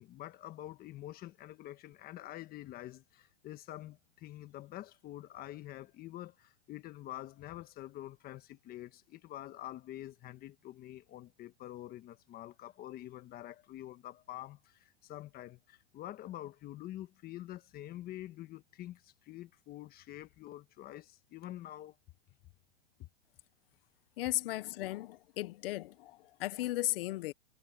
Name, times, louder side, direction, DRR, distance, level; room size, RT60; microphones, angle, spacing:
voice 1, 0.0-22.0 23.0-23.1, left 14 dB, 25° left, 1.3 m, -47 dB
voice 2, 24.2-27.3, left 17 dB, 60° left, 0.9 m, -36 dB
hypercardioid pair, 140°, 33 cm